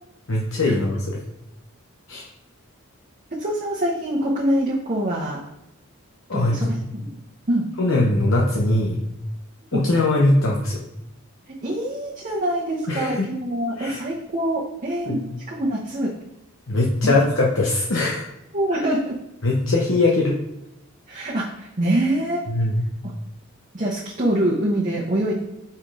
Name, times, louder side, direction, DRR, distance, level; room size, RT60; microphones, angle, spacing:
voice 1, 0.3-1.2 2.1-2.3 6.3-6.8 7.8-9.0 9.7-10.8 12.9-13.3 13.8-14.0 15.1-15.2 16.7-18.2 19.4-20.4 22.5-22.9, left 2 dB, 65° left, -2 dB, 0.9 m, -21 dB
voice 2, 3.4-5.4 6.3-7.1 7.5-7.7 9.7-9.8 11.6-16.1 17.0-17.2 18.5-19.2 21.1-22.5 23.0-23.1 23.7-25.3, right 1 dB, 35° right, -5 dB, 1.1 m, -24 dB
5.9 x 4.4 x 4.8 m, 0.88 s
head